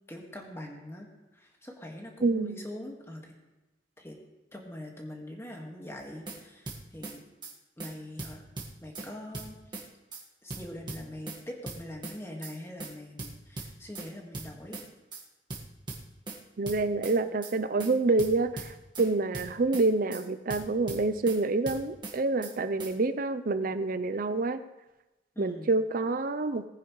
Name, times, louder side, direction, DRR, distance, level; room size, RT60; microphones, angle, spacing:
voice 1, 0.1-3.4 4.0-4.2 4.5-7.2 7.8-8.5 8.8-9.8 10.4-14.8 25.4-25.7, left 1 dB, 15° left, 0 dB, 1.8 m, -43 dB
voice 2, 2.2-2.6 16.6-24.6 25.4-26.6, right 3 dB, 50° right, 12 dB, 0.6 m, -27 dB
sound 1, 6.0-6.4 6.7-7.1 7.4-7.5 7.8-7.9 8.2-9.1 9.3-9.8 10.1-10.2 10.5-11.4 11.7-12.1 12.4-12.5 12.8-12.9 13.2-14.1 14.3-14.8 15.1-15.2 15.5-16.4 16.7-17.1 17.4-17.5 17.8-17.9 18.2-19.1 19.3-19.8 20.1-20.2 20.5-21.4 21.7-22.1 22.4-22.5 22.8-22.9, right 2 dB, 25° right, 1.7 m, -39 dB
19.5 x 9.6 x 3.2 m, 1.0 s
head